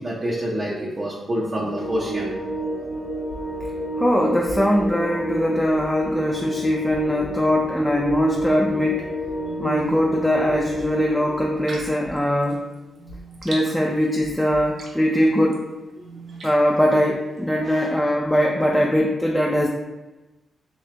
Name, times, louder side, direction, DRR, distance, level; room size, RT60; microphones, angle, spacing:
voice 1, 0.0-2.4 9.4-10.0 13.0-13.4 16.0-16.6 17.6-17.9, right 1 dB, 35° right, -5 dB, 0.7 m, -29 dB
sound 1, 1.7-11.6, right 1 dB, 55° left, 0.8 m, -29 dB
sound 2, 3.3-3.7 4.5-4.9 5.7-6.1 6.9-7.3 8.0-8.5 9.2-9.6 10.5-10.9 11.7-12.1 13.1-13.5 14.2-14.6, left 1 dB, 85° left, 0.4 m, -40 dB
voice 2, 4.0-9.1 9.6-12.6 13.4-15.6 16.4-19.7, equal, 5° left, -1 dB, 0.4 m, -21 dB
sound 3, 11.7-18.0, right 2 dB, 70° right, 0.8 m, -44 dB
3.3 x 2.8 x 3.3 m, 1.1 s
cardioid pair, 80°, 0 cm